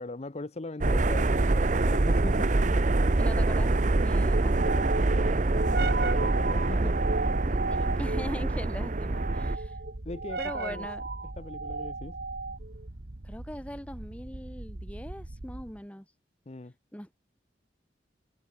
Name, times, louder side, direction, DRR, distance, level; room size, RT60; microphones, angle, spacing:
voice 1, 0.0-2.5 5.5-7.0 10.1-10.9 11.4-12.2 16.5-16.7, left 2 dB, 35° left, 0.7 m, -40 dB
sound 1, 0.8-9.6, right 2 dB, 45° right, 0.8 m, -25 dB
sound 2, 2.6-15.8, right 3 dB, 60° right, 1.4 m, -36 dB
voice 2, 3.2-5.7 7.5-9.8 10.4-11.0 13.2-16.1 16.9-17.2, equal, 10° left, 2.5 m, -41 dB
head